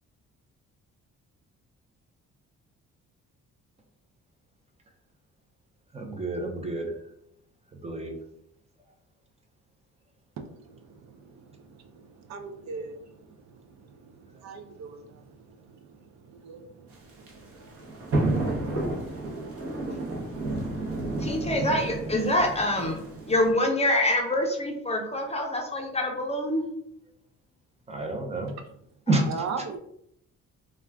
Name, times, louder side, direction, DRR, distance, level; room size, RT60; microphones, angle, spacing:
voice 1, 5.9-6.9 7.8-8.1 27.9-28.5 29.1-29.3, right 2 dB, 20° right, 3 dB, 0.6 m, -28 dB
voice 2, 10.4-19.3 29.3-29.8, right 5 dB, 65° right, 5 dB, 0.5 m, -41 dB
sound 1, 16.9-23.5, right 2 dB, 50° right, 0.9 m, -31 dB
voice 3, 21.2-23.0 23.3-26.6, left 1 dB, 20° left, 2 dB, 0.6 m, -25 dB
2.3 x 2.3 x 3.3 m, 0.72 s
cardioid pair, 90°, 30 cm